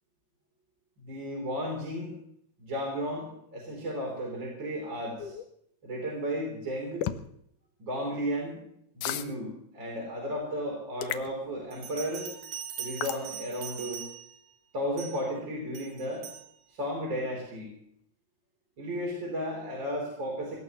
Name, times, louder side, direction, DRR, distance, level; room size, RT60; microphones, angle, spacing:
voice 1, 1.0-2.1 2.6-5.4 5.8-7.1 7.8-8.6 8.9-12.3 12.8-14.0 14.7-16.3 16.7-17.7 18.8-20.6, equal, 30° right, -1 dB, 4.0 m, -34 dB
sound 1, 5.2-5.4 7.0-7.2 9.0-9.3 11.0-11.3 13.0-13.2, left 11 dB, 80° left, 1.9 m, -32 dB
Bell, 11.7-14.4 15.0-15.3 15.8-16.5, right 8 dB, 80° right, 5.3 m, -41 dB
25.0 x 18.0 x 3.1 m, 0.71 s
omnidirectional pair, 4.7 m